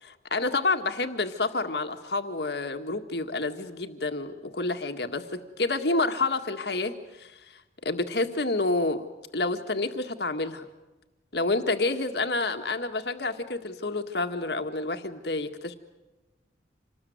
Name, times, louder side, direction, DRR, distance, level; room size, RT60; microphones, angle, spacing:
voice 1, 0.0-7.3 7.8-9.1 9.3-10.6 11.3-15.7, left 3 dB, 65° left, 7 dB, 1.8 m, -29 dB
27.5 x 20.0 x 9.5 m, 1.1 s
head